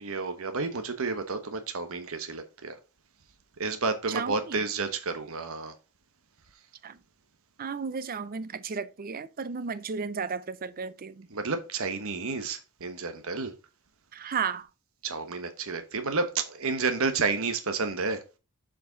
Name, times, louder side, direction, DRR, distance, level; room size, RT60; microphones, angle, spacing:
voice 1, 0.0-2.7 3.6-5.7 11.3-13.5 15.0-18.2, right 4 dB, 65° right, 1.1 m, -30 dB
voice 2, 4.1-4.6 6.8-7.0 7.6-11.3 14.1-14.7, right 5 dB, 40° right, 0.5 m, -34 dB
6.9 x 5.2 x 3.9 m
head